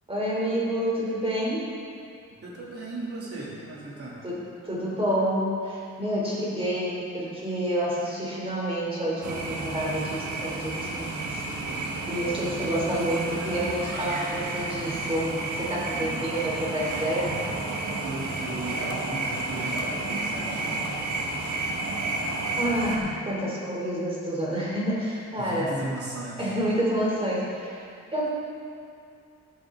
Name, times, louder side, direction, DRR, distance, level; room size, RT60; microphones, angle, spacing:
voice 1, 0.1-1.7 4.2-17.4 20.5-20.7 22.6-25.7 26.4-28.3, equal, 20° right, -5 dB, 3.3 m, -29 dB
voice 2, 2.4-4.2 16.0-16.3 18.0-20.8 25.4-26.4, right 2 dB, 55° right, -6 dB, 2.8 m, -37 dB
sound 1, 9.2-23.0, right 2 dB, 85° right, 1.5 m, -31 dB
13.5 x 10.5 x 3.8 m, 2.5 s
wide cardioid pair, 145°, 29 cm